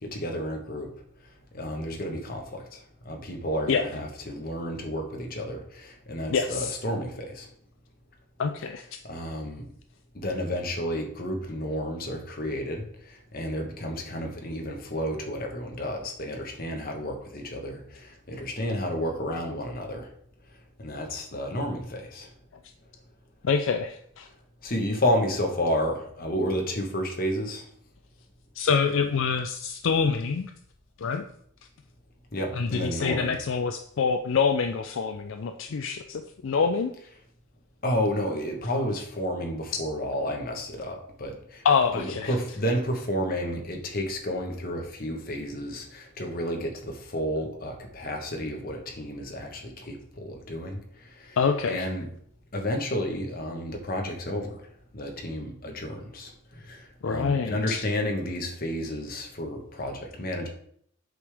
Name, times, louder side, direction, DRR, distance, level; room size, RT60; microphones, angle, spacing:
voice 1, 0.0-0.9 1.5-7.5 9.0-9.7 10.1-20.1 20.8-22.3 24.6-27.6 32.3-33.4 37.8-41.6 41.9-51.4 51.6-52.1 52.5-54.6 54.9-60.5, equal, 45° left, 2 dB, 1.2 m, -31 dB
voice 2, 6.3-6.8 8.4-8.9 23.4-24.3 28.6-30.5 31.0-31.3 32.5-36.9 41.6-42.3 51.4-51.9 57.0-57.8, left 5 dB, 65° left, 7 dB, 0.4 m, -26 dB
8.0 x 5.1 x 3.5 m, 0.67 s
head